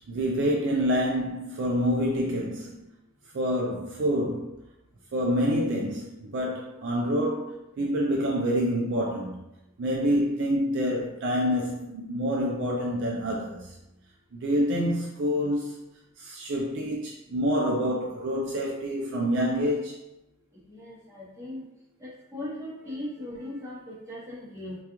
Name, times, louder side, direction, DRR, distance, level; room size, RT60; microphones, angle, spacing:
voice 1, 0.1-2.9 3.3-4.6 5.1-9.4 9.8-13.8 14.3-15.8 16.2-20.0, equal, 55° right, -2 dB, 0.4 m, -27 dB
voice 2, 20.7-21.7 22.0-24.8, left 1 dB, 10° right, -9 dB, 0.9 m, -38 dB
2.3 x 2.3 x 2.9 m, 0.92 s
head